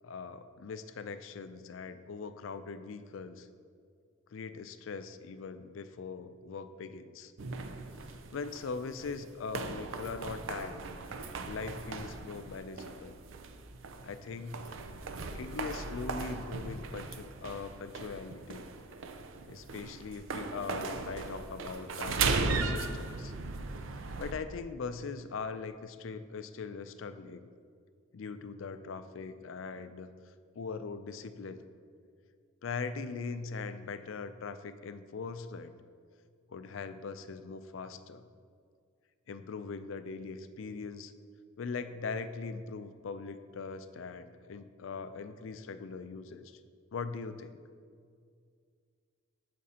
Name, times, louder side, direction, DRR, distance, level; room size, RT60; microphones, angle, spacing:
voice 1, 0.0-3.5 4.3-7.3 8.3-10.8 11.4-13.2 14.0-14.6 15.3-18.7 19.5-23.3 24.2-27.5 28.1-31.6 32.6-35.7 36.5-38.3 39.3-41.1 41.6-46.6 46.9-47.6, left 4 dB, 75° left, 11 dB, 0.4 m, -41 dB
sound 1, 7.4-24.3, right 4 dB, 75° right, 0.5 m, -38 dB
14.0 x 5.1 x 2.8 m, 2.2 s
head